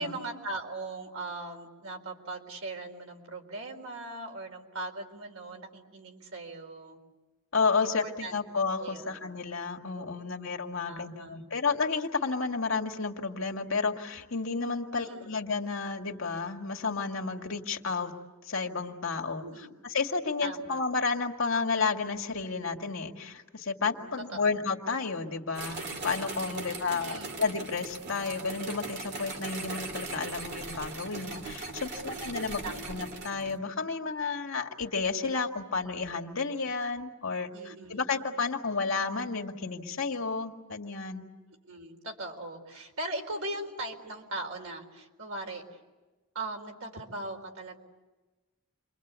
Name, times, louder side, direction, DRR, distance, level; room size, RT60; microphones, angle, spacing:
voice 1, 0.0-7.0 7.8-8.4 8.8-9.2 9.9-10.1 10.4-10.6 10.9-11.6 14.9-15.3 19.4-19.7 20.4-20.8 24.0-24.6 26.7-27.4 32.1-32.9 37.5-38.0 41.7-45.8 46.3-47.8, right 2 dB, 75° right, 3 dB, 4.2 m, -40 dB
voice 2, 7.5-18.1 18.4-19.4 19.9-32.6 32.9-41.2, left 4 dB, 65° left, 3 dB, 2.1 m, -31 dB
sound 1, 25.5-33.6, right 3 dB, 50° right, 2.6 m, -39 dB
29.0 x 24.0 x 8.2 m, 1.2 s
head